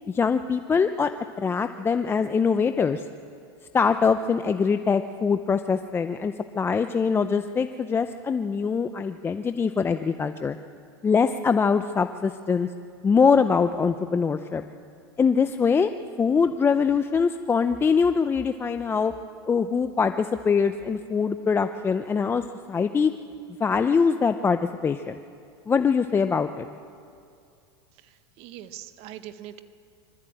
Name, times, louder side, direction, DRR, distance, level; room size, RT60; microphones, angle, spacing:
voice 1, 0.1-1.1 1.4-3.0 3.7-10.6 11.0-12.7 13.0-14.6 15.2-15.9 16.2-19.1 19.5-22.4 22.7-23.1 23.6-25.2 25.7-26.7, left 5 dB, 15° left, 9 dB, 0.6 m, -23 dB
voice 2, 28.0-29.6, right 12 dB, 50° right, 10 dB, 1.4 m, -42 dB
24.5 x 13.5 x 9.0 m, 2.4 s
supercardioid pair, 120°, 13 cm